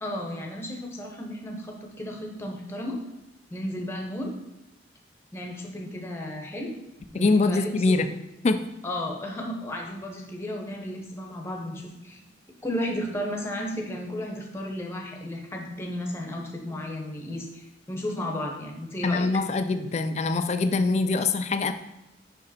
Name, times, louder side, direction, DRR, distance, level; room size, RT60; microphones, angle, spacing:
voice 1, 0.0-3.0 3.5-4.3 5.3-6.7 7.1-8.1 8.8-12.2 12.6-19.2, left 1 dB, 15° left, 1 dB, 0.8 m, -34 dB
voice 2, 7.1-8.1 8.4-8.6 19.0-21.7, left 3 dB, 35° left, 10 dB, 0.4 m, -23 dB
5.3 x 5.1 x 4.1 m, 0.93 s
head